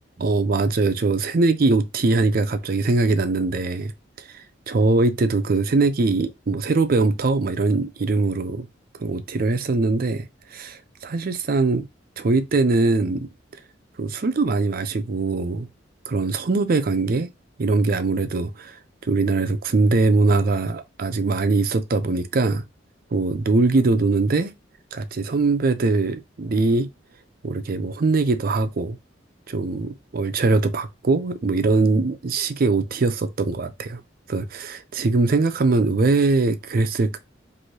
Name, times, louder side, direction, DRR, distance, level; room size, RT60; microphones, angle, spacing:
voice 1, 0.2-3.9 4.3-8.7 9.0-11.8 12.2-13.3 14.0-15.7 16.1-17.3 17.6-18.8 19.0-22.6 23.1-24.5 24.9-26.9 27.4-29.0 29.5-34.0 34.3-37.2, right 3 dB, 50° right, 0.5 m, -22 dB
3.1 x 2.6 x 2.7 m
head